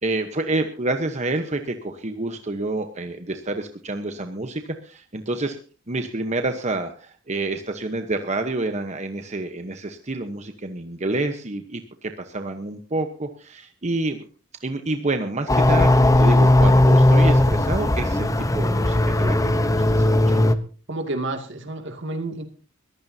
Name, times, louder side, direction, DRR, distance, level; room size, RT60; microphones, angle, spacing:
voice 1, 0.0-5.6 5.9-14.2 14.6-18.3 18.5-20.5, right 2 dB, 35° right, 6 dB, 1.1 m, -28 dB
sound 1, 15.5-20.6, left 1 dB, 15° left, 0.9 m, -17 dB
voice 2, 20.9-22.4, right 2 dB, 65° right, 6 dB, 2.4 m, -30 dB
21.5 x 15.0 x 2.8 m, 0.38 s
head